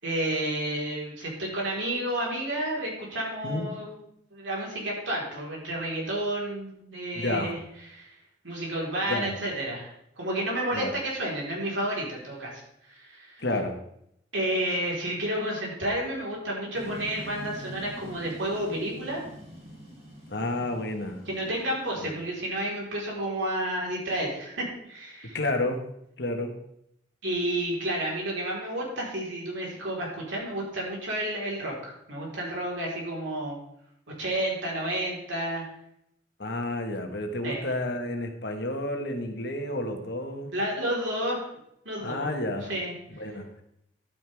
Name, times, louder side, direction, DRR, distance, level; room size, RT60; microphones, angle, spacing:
voice 1, 0.0-4.0 4.3-7.6 7.9-8.1 8.4-13.4 14.3-19.2 21.3-25.4 27.2-33.6 34.2-35.6 37.4-37.7 40.5-41.5 41.8-42.3 42.7-43.2, right 1 dB, 80° right, -3 dB, 4.2 m, -31 dB
voice 2, 7.1-7.5 9.1-9.4 10.7-10.9 13.4-13.8 20.3-21.2 22.0-22.1 25.3-25.8 26.2-26.5 36.4-40.5 42.0-42.7 43.1-43.6, left 1 dB, 60° left, 4 dB, 1.6 m, -30 dB
sound 1, 16.7-22.8, equal, 30° right, 2.8 m, -45 dB
11.5 x 9.5 x 3.6 m, 0.75 s
head